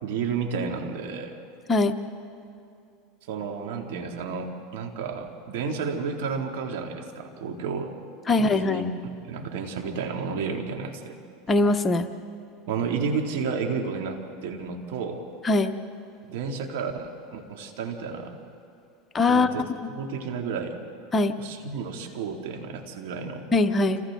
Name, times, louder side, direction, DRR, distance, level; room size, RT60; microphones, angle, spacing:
voice 1, 0.0-1.3 3.3-7.9 8.3-8.8 9.2-11.2 12.7-15.2 16.3-18.4 19.3-19.7 20.0-20.8 21.3-23.5, right 5 dB, 75° right, 3 dB, 2.7 m, -31 dB
voice 2, 8.3-8.8 11.5-12.1 15.4-15.7 19.1-19.5 21.1-21.4 23.5-24.0, left 2 dB, 20° left, 7 dB, 1.0 m, -21 dB
28.5 x 27.5 x 3.9 m, 2.5 s
supercardioid pair, 115°, 0 cm